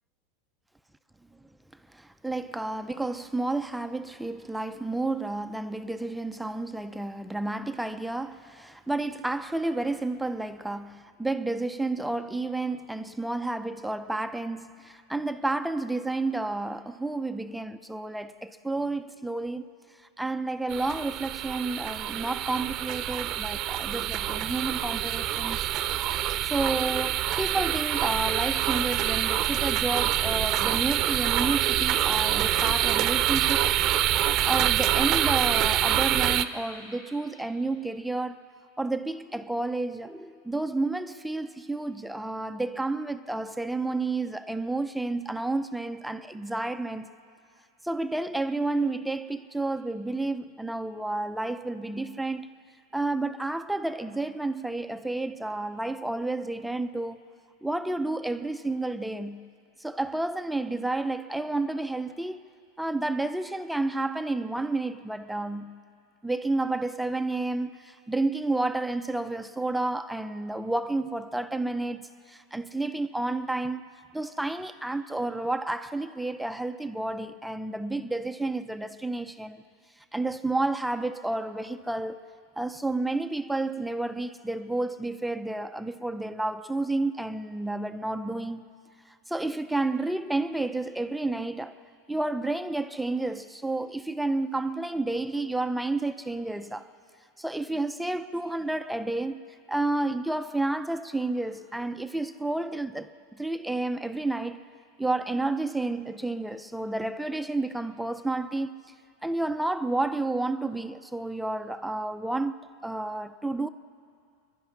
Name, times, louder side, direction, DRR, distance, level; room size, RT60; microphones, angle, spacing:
voice 1, 1.9-19.7 20.2-25.6 26.5-33.6 34.4-38.5 38.8-47.1 47.8-52.5 52.9-57.2 57.6-59.5 59.8-62.4 62.8-65.8 66.2-73.8 74.1-79.6 80.1-82.2 82.6-88.6 89.1-91.8 92.1-96.9 97.4-99.4 99.7-104.6 105.0-108.8 109.2-113.7, right 2 dB, 5° right, 0.6 m, -30 dB
sound 1, 20.7-36.4, right 12 dB, 45° right, 0.7 m, -26 dB
25.5 x 11.5 x 9.8 m
supercardioid pair, 120°, 0 cm